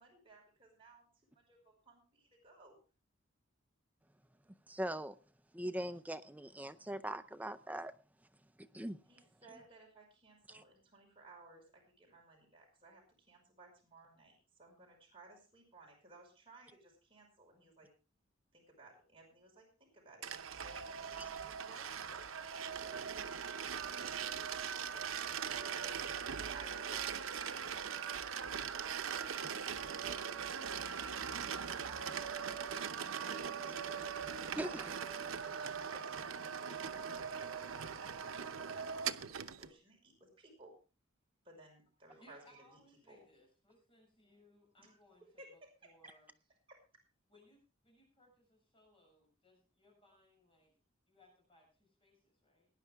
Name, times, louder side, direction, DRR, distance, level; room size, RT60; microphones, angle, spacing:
voice 1, 0.0-2.8 9.1-17.9 18.5-23.0 23.8-25.1 25.8-26.0 26.4-33.7 34.0-34.8 35.5-40.7 41.4-42.8 43.1-43.2 44.8-44.9 45.4-45.5 46.7-46.8, right 2 dB, 30° right, 5.4 m, -60 dB
voice 2, 4.7-5.2 5.5-7.9 8.6-9.0 10.5-10.6 21.2-21.3 34.6-35.0, right 1 dB, 10° right, 0.5 m, -41 dB
sound 1, 20.2-39.7, right 7 dB, 80° right, 0.8 m, -41 dB
voice 3, 42.2-46.3 47.3-50.7 51.1-52.7, left 1 dB, 30° left, 6.5 m, -67 dB
19.0 x 10.5 x 3.5 m
head